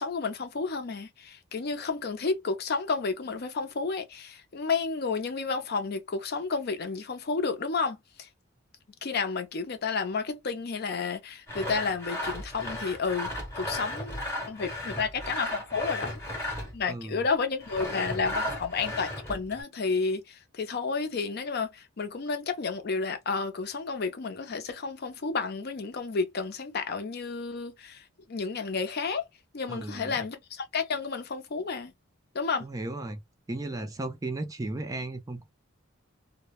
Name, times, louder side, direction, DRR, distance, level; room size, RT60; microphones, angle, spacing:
voice 1, 0.0-8.3 9.0-14.2 14.5-16.1 16.7-28.0 28.3-29.3 29.5-31.9 32.3-32.7, left 4 dB, 50° left, 0.5 m, -31 dB
Sawing, 11.5-16.9 17.6-19.6, left 1 dB, 15° left, 0.8 m, -35 dB
voice 2, 16.9-17.2 29.7-30.2 32.6-33.2 33.5-35.5, right 2 dB, 15° right, 0.3 m, -35 dB
2.1 x 2.0 x 3.0 m
head